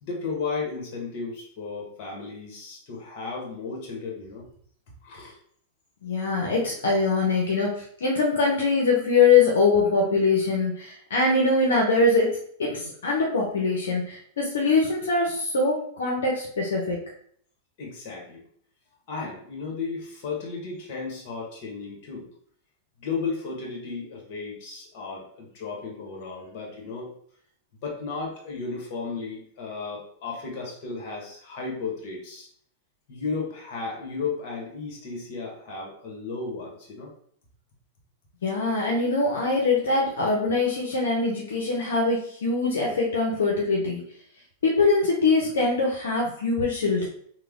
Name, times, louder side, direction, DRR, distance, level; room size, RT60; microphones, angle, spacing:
voice 1, 0.0-4.5 5.0-5.4 17.8-18.4 19.1-22.3 23.0-27.1 27.8-32.5 33.1-37.1, left 4 dB, 50° left, -1 dB, 1.4 m, -34 dB
voice 2, 6.0-17.0 38.4-44.0 44.6-47.1, left 3 dB, 80° left, -2 dB, 0.7 m, -23 dB
3.1 x 2.2 x 3.6 m, 0.62 s
hypercardioid pair, 110°, 0 cm